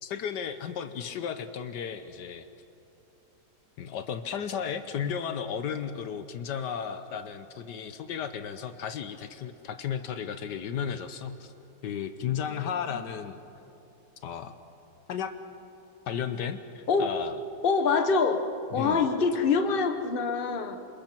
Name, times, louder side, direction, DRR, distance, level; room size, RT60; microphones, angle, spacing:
voice 1, 0.0-2.5 3.8-11.5 11.8-13.4 14.2-14.5 15.1-15.3 16.1-17.4 18.7-19.0, left 7 dB, 75° left, 10 dB, 1.4 m, -34 dB
voice 2, 12.5-13.0 16.9-17.1 17.6-18.4 18.7-20.8, left 5 dB, 35° left, 6 dB, 1.2 m, -25 dB
28.0 x 27.0 x 4.5 m, 2.8 s
omnidirectional pair, 1.9 m